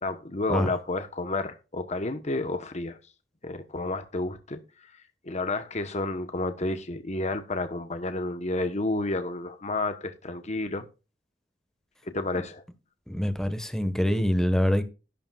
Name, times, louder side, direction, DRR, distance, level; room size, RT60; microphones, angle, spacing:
voice 1, 0.0-3.0 3.4-4.6 5.2-10.9 12.1-12.6, left 2 dB, 40° left, 1.1 m, -30 dB
voice 2, 13.1-14.8, equal, 5° left, 1.4 m, -25 dB
12.0 x 11.5 x 2.4 m
head